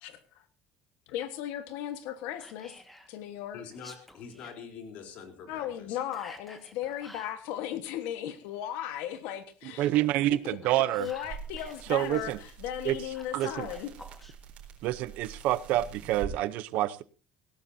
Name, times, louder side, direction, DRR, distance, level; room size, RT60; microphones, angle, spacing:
voice 1, 0.0-0.4 1.1-2.8 3.1-3.6 5.5-9.9 10.3-10.6 11.0-13.9, left 11 dB, 80° left, 10 dB, 1.4 m, -36 dB
Whispering, 2.4-3.1 3.7-4.6 6.1-7.4 10.4-12.3 13.1-14.3, left 1 dB, 5° left, 1.6 m, -51 dB
voice 2, 3.5-6.0, left 6 dB, 55° left, 5 dB, 3.6 m, -45 dB
voice 3, 9.8-11.1 11.9-12.4 12.8-13.0 13.3-13.7 14.8-17.0, right 14 dB, 60° right, 16 dB, 0.7 m, -27 dB
sound 1, 11.0-16.4, right 7 dB, 45° right, 3.9 m, -45 dB
19.5 x 17.0 x 2.7 m, 0.35 s
cardioid pair, 170°, 3 cm